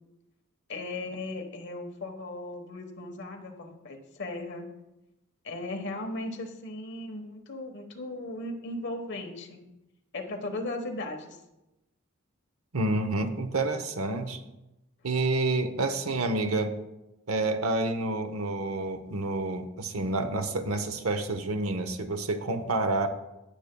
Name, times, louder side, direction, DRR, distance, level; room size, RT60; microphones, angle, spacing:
voice 1, 0.7-4.7 5.4-9.6 10.1-11.4, left 2 dB, 55° left, 4 dB, 1.2 m, -37 dB
voice 2, 12.7-14.4 15.0-16.7 17.3-23.1, right 2 dB, 80° right, 9 dB, 0.8 m, -28 dB
17.0 x 6.7 x 2.2 m, 0.95 s
head